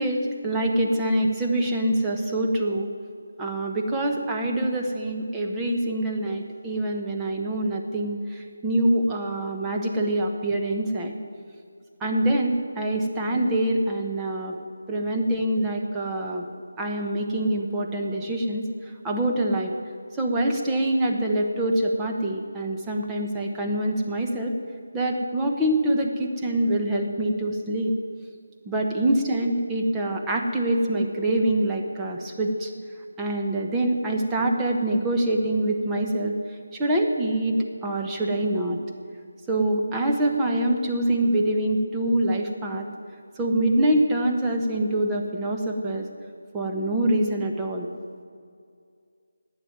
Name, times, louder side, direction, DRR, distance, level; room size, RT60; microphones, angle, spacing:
voice 1, 0.0-2.9 3.4-11.1 12.0-14.5 14.9-16.4 16.8-18.7 19.0-19.7 20.2-24.5 24.9-27.9 28.7-32.7 33.2-36.4 36.7-38.8 39.5-42.9 43.4-46.1 46.5-47.9, right 1 dB, 10° right, 0 dB, 1.0 m, -25 dB
11.5 x 9.0 x 9.4 m, 2.3 s
figure-of-eight pair, 170°, 0 cm